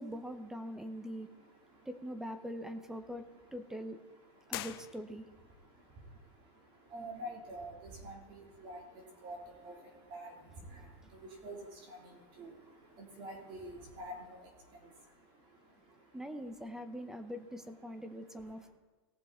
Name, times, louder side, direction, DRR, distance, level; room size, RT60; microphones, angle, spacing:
voice 1, 0.0-1.3 1.9-3.3 3.5-4.0 4.5-5.2 16.1-18.7, equal, 5° right, 10 dB, 0.8 m, -42 dB
voice 2, 0.7-1.9 3.0-3.6 3.9-4.7 5.5-16.5 16.8-17.3 18.0-18.7, right 1 dB, 35° right, -1 dB, 3.7 m, -50 dB
sound 1, 4.5-5.5, left 15 dB, 55° left, 0.8 m, -43 dB
18.5 x 7.1 x 4.3 m, 1.3 s
supercardioid pair, 145°, 14 cm